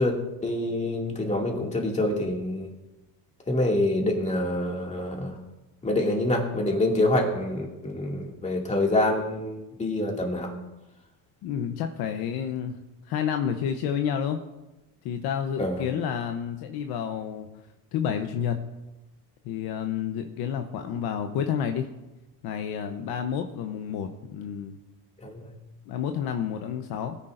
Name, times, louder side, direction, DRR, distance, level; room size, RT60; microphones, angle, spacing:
voice 1, 0.0-2.7 3.5-5.4 5.8-10.5 15.6-15.9 25.2-25.5, left 1 dB, 15° left, 0 dB, 2.4 m, -26 dB
voice 2, 11.4-12.7 13.1-14.4 15.0-17.5 17.9-18.6 19.4-21.9 22.4-24.8 25.9-27.2, left 8 dB, 60° left, 6 dB, 0.9 m, -30 dB
18.0 x 9.9 x 2.6 m, 1.0 s
supercardioid pair, 115°, 43 cm